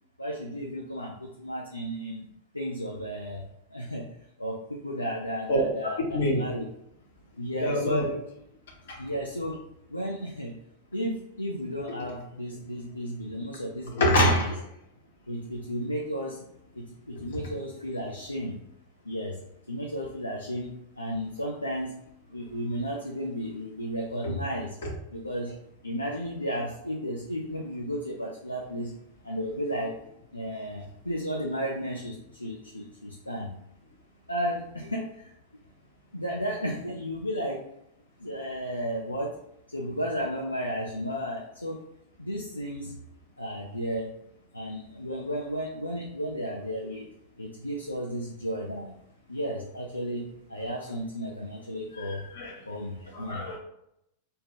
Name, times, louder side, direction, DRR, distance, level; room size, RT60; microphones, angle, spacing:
voice 1, 0.2-2.3 2.5-3.4 3.7-4.0 4.4-6.7 7.4-8.0 9.0-9.6 9.9-10.5 10.9-14.5 15.3-16.4 16.8-18.6 19.0-19.4 19.7-21.9 22.3-24.8 25.1-25.6 25.8-28.9 29.2-29.9 30.3-33.5 34.3-35.3 36.1-37.6 38.2-39.3 39.7-41.8 42.2-42.9 43.4-44.1 44.5-47.1 47.4-48.9 49.3-52.2 52.6-53.4, equal, 85° left, 0 dB, 0.4 m, -33 dB
voice 2, 5.5-6.4 7.6-8.1 8.9-9.0 13.9-14.5 17.3-17.4 24.2-24.3 24.8-24.9 52.0-52.6 53.1-53.6, equal, 60° left, 0 dB, 0.8 m, -26 dB
2.7 x 2.2 x 3.6 m, 0.78 s
figure-of-eight pair, 90°, 0 cm